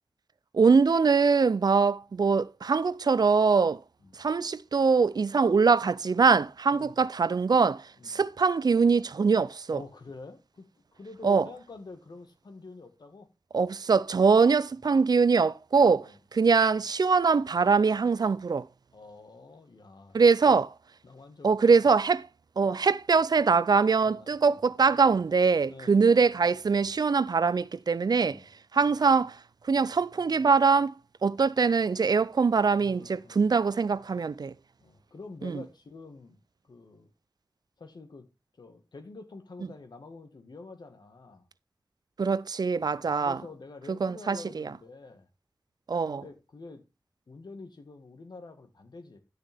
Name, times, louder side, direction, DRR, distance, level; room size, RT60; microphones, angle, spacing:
voice 1, 0.5-3.8 4.2-9.8 11.2-11.5 13.5-18.6 20.1-20.7 21.4-22.2 22.6-28.4 28.7-29.4 29.7-30.9 31.2-34.5 35.4-35.6 42.2-43.4 44.0-44.7 45.9-46.2, right 5 dB, 70° right, 0.4 m, -23 dB
voice 2, 6.7-7.0 8.0-8.2 9.7-10.7 10.9-13.3 14.9-15.0 15.8-16.2 18.9-20.2 20.5-20.6 21.0-22.0 24.0-24.6 25.7-26.0 28.2-28.5 32.8-33.5 34.8-36.4 36.6-37.1 37.8-38.3 38.6-41.5 42.9-45.3 46.1-46.8 47.3-49.2, left 3 dB, 85° left, 1.7 m, -47 dB
11.5 x 6.7 x 3.5 m
wide cardioid pair, 55°, 7 cm